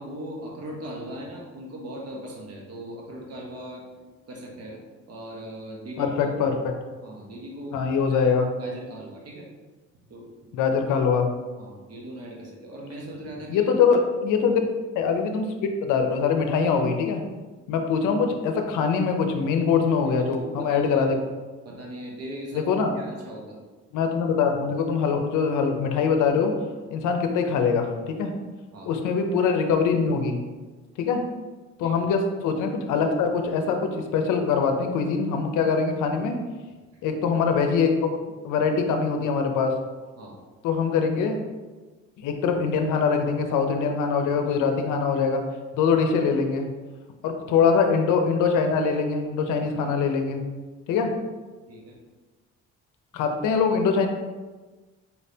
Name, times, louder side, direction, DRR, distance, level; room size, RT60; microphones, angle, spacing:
voice 1, 0.0-3.8 4.3-4.8 5.1-6.5 7.0-7.8 8.1-9.5 10.1-10.5 11.6-13.7 20.0-21.1 21.6-22.7 22.9-23.6 28.7-28.9 31.8-32.0 40.2-40.4 51.7-52.0, equal, 55° right, -2 dB, 1.1 m, -39 dB
voice 2, 6.0-6.5 7.7-8.5 10.5-11.3 13.5-14.6 15.0-15.5 15.8-17.2 17.7-21.2 22.5-23.0 23.9-26.5 26.9-28.3 28.8-30.4 31.0-31.2 31.8-36.3 37.0-38.1 38.4-39.7 40.6-41.4 42.2-45.4 45.7-46.7 47.2-50.4 50.9-51.1 53.1-54.1, left 5 dB, 85° left, 5 dB, 0.6 m, -23 dB
4.5 x 3.3 x 2.7 m, 1.3 s
cardioid pair, 90°, 30 cm